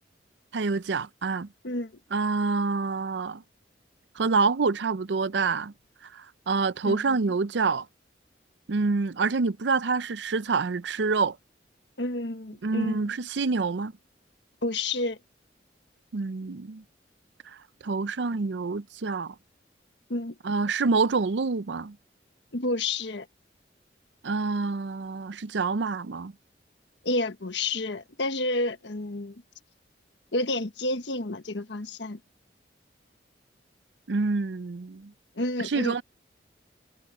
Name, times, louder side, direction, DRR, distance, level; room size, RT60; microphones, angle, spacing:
voice 1, 0.5-1.5 2.1-3.4 4.2-5.7 6.1-7.9 8.7-11.4 12.6-13.9 16.1-16.8 17.8-19.3 20.4-22.0 24.2-26.3 34.1-35.1 35.6-36.0, right 4 dB, 80° right, 0.6 m, -27 dB
voice 2, 6.8-7.2 12.0-13.1 14.6-15.2 20.1-20.4 22.5-23.3 27.0-29.4 30.3-32.2 35.4-36.0, left 2 dB, 80° left, 1.4 m, -30 dB
head